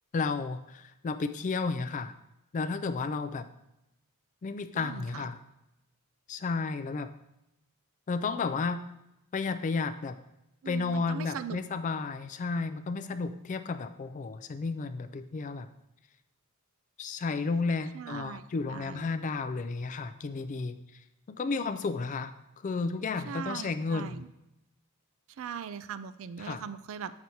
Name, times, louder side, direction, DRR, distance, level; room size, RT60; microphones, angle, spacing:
voice 1, 0.1-2.1 2.5-3.5 4.4-5.4 6.3-7.1 8.1-8.8 9.3-10.2 10.7-15.7 17.0-21.0 21.3-24.3 26.4-26.6, left 4 dB, 35° left, 10 dB, 0.3 m, -32 dB
voice 2, 4.7-5.3 10.6-11.6 17.9-18.4 18.7-19.1 23.3-24.3 25.4-27.1, right 7 dB, 60° right, 13 dB, 0.3 m, -40 dB
7.6 x 5.9 x 2.7 m, 0.89 s
head